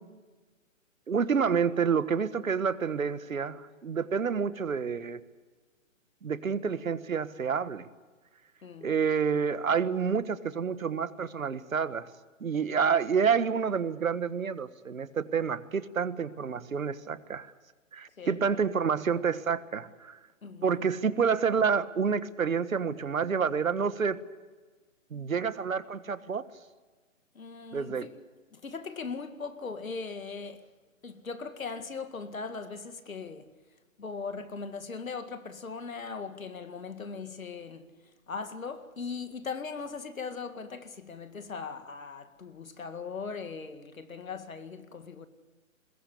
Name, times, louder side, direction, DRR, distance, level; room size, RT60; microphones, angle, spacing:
voice 1, 1.1-5.2 6.2-7.9 8.8-12.1 12.4-17.5 17.9-20.2 20.6-24.2 25.1-26.4 27.7-28.1, right 6 dB, 80° right, 1.6 m, -28 dB
voice 2, 8.6-8.9 18.2-18.6 20.4-20.8 27.3-28.1 28.5-30.7 31.0-33.5 34.0-38.0 38.3-45.3, left 5 dB, 85° left, 2.1 m, -39 dB
22.5 x 21.0 x 8.4 m
hypercardioid pair, 145°, 40 cm